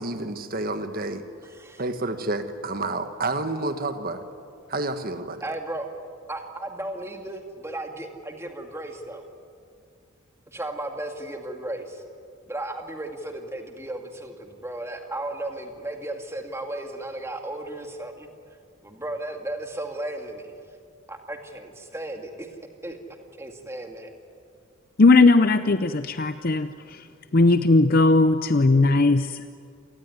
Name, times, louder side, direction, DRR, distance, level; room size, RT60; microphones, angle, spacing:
voice 1, 0.0-1.2 1.8-4.2 4.7-5.4, right 2 dB, 45° right, 8 dB, 1.5 m, -29 dB
voice 2, 1.4-1.8 5.4-5.9 6.3-9.2 10.5-12.0 12.5-18.3 18.8-20.3 21.1-22.5 22.8-23.0 23.4-24.1, right 1 dB, 15° right, 4 dB, 2.2 m, -35 dB
voice 3, 25.0-27.0 27.3-29.4, left 3 dB, 45° left, 10 dB, 0.6 m, -18 dB
28.0 x 19.5 x 9.6 m, 2.3 s
head